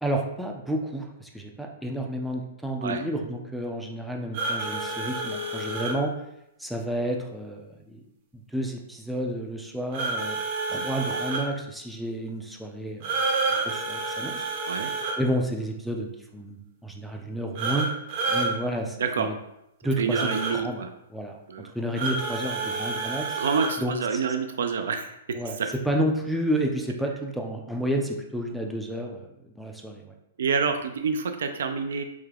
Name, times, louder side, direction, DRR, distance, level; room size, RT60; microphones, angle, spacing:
voice 1, 0.0-6.2 6.6-8.0 8.5-10.4 10.7-13.2 13.6-14.5 15.2-17.9 18.3-19.4 19.8-20.8 21.1-21.4 21.7-23.4 23.8-24.2 25.3-25.6 25.8-29.3 29.6-30.1, right 1 dB, ahead, 0 dB, 0.4 m, -30 dB
sound 1, 4.3-5.9 9.9-11.4 13.0-15.2 17.6-18.5 20.1-20.5 22.0-23.7, right 3 dB, 45° right, 0.7 m, -29 dB
voice 2, 19.0-19.3 20.0-20.9 21.5-21.7 22.6-22.7 23.4-25.1 25.6-25.7 30.4-32.0, right 5 dB, 80° right, 7 dB, 0.4 m, -27 dB
3.5 x 2.2 x 3.3 m, 0.82 s
hypercardioid pair, 145°, 0 cm